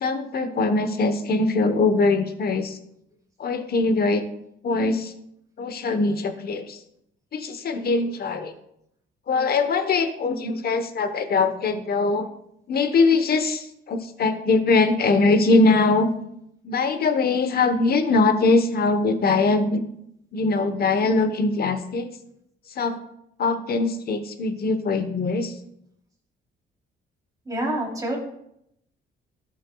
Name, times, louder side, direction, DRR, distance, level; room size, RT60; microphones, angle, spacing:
voice 1, 0.0-2.8 3.4-4.2 4.6-5.1 5.6-6.8 7.3-8.5 9.3-12.3 12.7-16.1 16.6-19.8 20.3-22.1 22.8-23.0 23.4-25.5, left 3 dB, 50° left, 9 dB, 1.0 m, -22 dB
voice 2, 27.4-28.2, right 1 dB, 15° right, -2 dB, 3.2 m, -27 dB
13.0 x 7.2 x 2.3 m, 0.76 s
cardioid pair, 90°, 20 cm